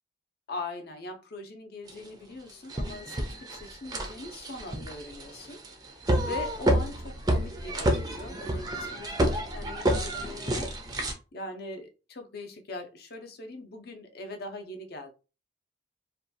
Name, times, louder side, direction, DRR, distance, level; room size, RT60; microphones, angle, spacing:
voice 1, 0.5-5.6 5.9-10.7 11.0-15.1, left 2 dB, 55° left, 0.5 m, -41 dB
sound 1, 1.9-2.0 2.5-11.1, right 1 dB, 20° right, 0.4 m, -29 dB
2.5 x 2.2 x 2.6 m
head